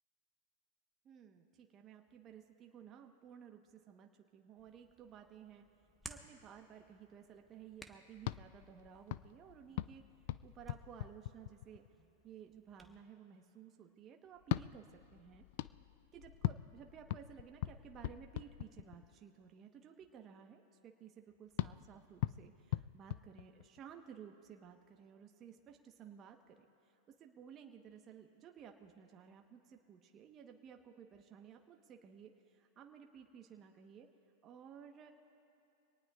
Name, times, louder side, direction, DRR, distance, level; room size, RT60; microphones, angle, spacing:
voice 1, 1.0-5.6 6.0-10.1 10.4-11.8 12.2-15.4 16.1-26.6 26.9-34.1 34.4-35.1, right 8 dB, 35° right, 3 dB, 1.1 m, -56 dB
Hands, 4.6-13.0, right 1 dB, ahead, 1.3 m, -60 dB
sound 1, 8.2-12.0 14.4-19.2 21.6-24.0, left 16 dB, 60° left, 0.3 m, -42 dB
25.5 x 18.5 x 2.4 m, 2.8 s
hypercardioid pair, 105°, 0 cm